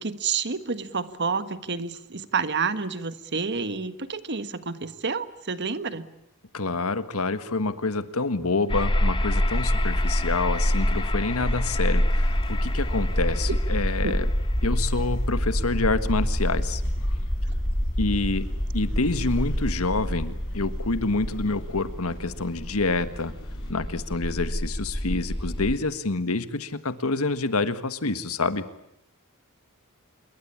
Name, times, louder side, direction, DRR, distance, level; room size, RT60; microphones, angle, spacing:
voice 1, 0.0-6.1 14.0-14.2, right 5 dB, 55° right, 12 dB, 1.5 m, -29 dB
voice 2, 6.5-14.3 14.6-16.8 18.0-18.5 18.7-23.3 23.7-28.7, left 3 dB, 80° left, 12 dB, 1.6 m, -27 dB
sound 1, 8.7-25.8, equal, 25° left, 1.7 m, -26 dB
sound 2, 9.4-23.7, left 1 dB, 60° left, 5.0 m, -50 dB
27.0 x 22.5 x 8.6 m, 0.79 s
head